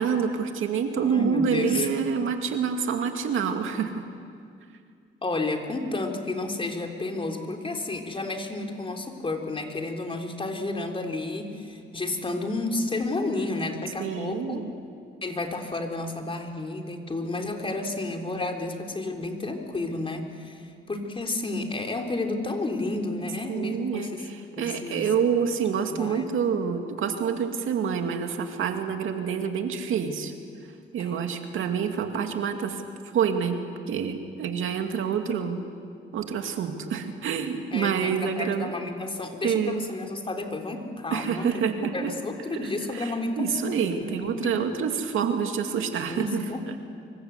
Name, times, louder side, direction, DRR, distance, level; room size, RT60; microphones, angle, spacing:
voice 1, 0.0-4.0 14.0-14.7 23.5-30.3 30.9-32.8 33.1-33.6 33.9-35.6 36.1-38.8 39.4-39.9 41.1-42.1 42.5-46.4, right 7 dB, 70° right, 5 dB, 2.3 m, -27 dB
voice 2, 1.0-1.9 5.2-14.6 15.2-24.3 24.6-25.1 25.9-26.3 31.0-31.3 37.7-44.6 46.1-46.8, left 2 dB, 25° left, 3 dB, 3.5 m, -31 dB
25.5 x 23.5 x 8.3 m, 2.3 s
cardioid pair, 95°, 21 cm